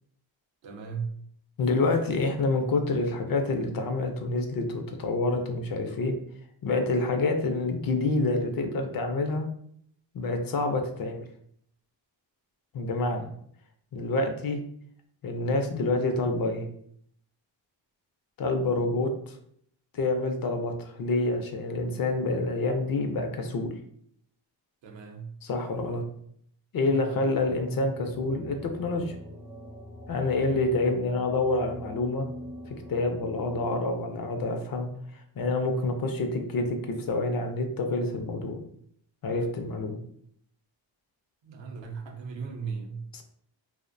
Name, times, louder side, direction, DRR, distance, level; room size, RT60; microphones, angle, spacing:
voice 1, 0.6-1.3 24.8-25.4 26.8-27.2 41.4-43.0, right 5 dB, 70° right, 3 dB, 0.6 m, -37 dB
voice 2, 1.6-6.2 6.6-9.5 10.1-11.2 12.7-13.3 13.9-14.6 15.2-16.7 18.4-19.4 19.9-23.7 25.4-26.0 26.7-29.1 30.1-32.3 32.7-38.6 39.2-40.0 43.1-43.2, left 2 dB, 50° left, 5 dB, 0.4 m, -27 dB
sound 1, 27.4-33.7, equal, 10° right, 0.5 m, -44 dB
2.4 x 2.1 x 2.5 m, 0.66 s
cardioid pair, 80°, 47 cm